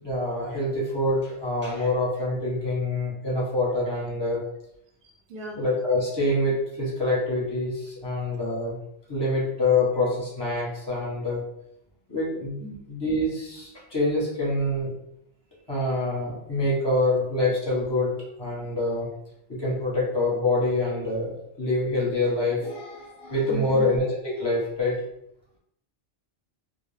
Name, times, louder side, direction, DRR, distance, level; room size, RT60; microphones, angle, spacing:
voice 1, 0.0-4.4 5.5-8.8 9.1-11.4 12.1-12.6 12.9-14.9 15.7-18.1 18.4-19.1 19.5-25.0, left 2 dB, 25° left, -5 dB, 0.9 m, -26 dB
voice 2, 5.0-5.6 12.6-12.8 23.5-23.8, equal, 55° right, -1 dB, 0.8 m, -38 dB
2.3 x 2.1 x 3.1 m, 0.77 s
omnidirectional pair, 1.2 m